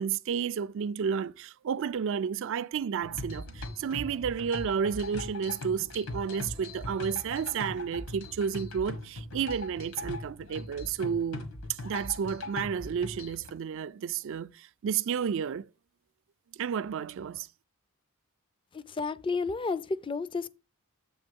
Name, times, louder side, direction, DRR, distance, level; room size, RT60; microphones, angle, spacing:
voice 1, 0.0-15.7 16.6-17.5, right 7 dB, 60° right, 0.3 m, -31 dB
sound 1, 3.0-13.5, left 2 dB, 85° left, 1.4 m, -40 dB
voice 2, 18.7-20.5, left 4 dB, 25° left, 0.4 m, -31 dB
7.7 x 3.5 x 5.2 m
head